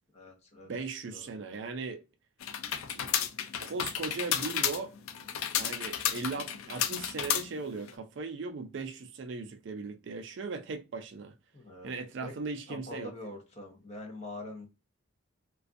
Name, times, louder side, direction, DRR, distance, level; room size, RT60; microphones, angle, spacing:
voice 1, 0.1-0.7 1.1-1.6 11.5-11.9 12.2-12.3 12.7-14.7, left 2 dB, 30° left, 0.7 m, -44 dB
voice 2, 0.6-2.0 2.9-3.1 3.6-4.9 5.6-11.4 11.8-13.1, right 4 dB, 60° right, 0.4 m, -38 dB
sound 1, 2.4-7.9, left 9 dB, 85° left, 0.4 m, -32 dB
2.5 x 2.3 x 2.4 m
head